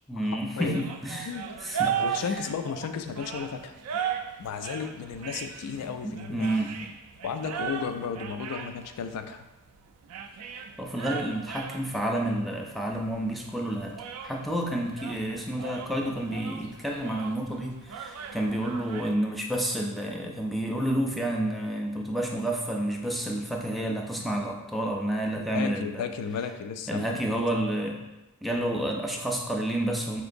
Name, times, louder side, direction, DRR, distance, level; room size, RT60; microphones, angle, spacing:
voice 1, 0.1-1.3 1.6-1.9 6.0-6.9 10.8-14.0 14.2-26.1 26.9-28.0 28.4-30.2, right 1 dB, ahead, 0 dB, 0.3 m, -30 dB
sound 1, 0.6-19.1, right 8 dB, 80° right, 0.3 m, -37 dB
voice 2, 1.8-3.7 4.4-6.5 7.2-9.5 25.4-27.5, left 6 dB, 85° left, 9 dB, 0.3 m, -34 dB
4.2 x 2.9 x 2.5 m, 1.0 s
head